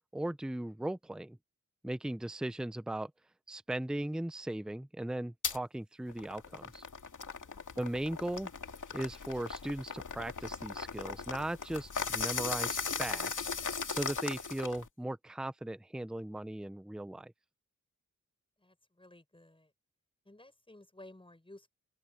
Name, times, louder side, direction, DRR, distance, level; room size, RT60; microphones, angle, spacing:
voice 1, 0.1-1.4 1.8-3.1 3.5-6.8 7.8-8.5 8.9-13.5 13.9-17.3, right 1 dB, ahead, 0.6 m, -38 dB
sound 1, 5.4-5.6 6.1-14.9, left 5 dB, 65° left, 2.3 m, -38 dB
voice 2, 7.4-7.8 18.6-19.7 20.2-21.7, left 1 dB, 15° left, 6.9 m, -56 dB
open air
wide cardioid pair, 100°, 33 cm